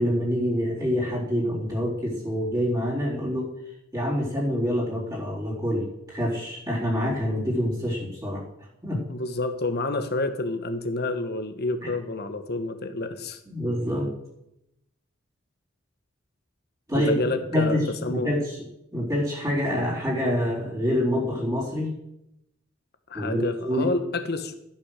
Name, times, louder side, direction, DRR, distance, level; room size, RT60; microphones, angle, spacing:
voice 1, 0.0-3.5 3.9-8.4 8.8-9.0 13.5-14.1 16.9-17.1 17.5-18.6 18.9-21.9 23.1-24.0, equal, 20° right, -6 dB, 3.9 m, -26 dB
voice 2, 9.1-13.4 16.9-18.3 23.1-24.5, left 2 dB, 55° left, 8 dB, 1.3 m, -29 dB
14.0 x 8.7 x 6.6 m, 0.83 s
head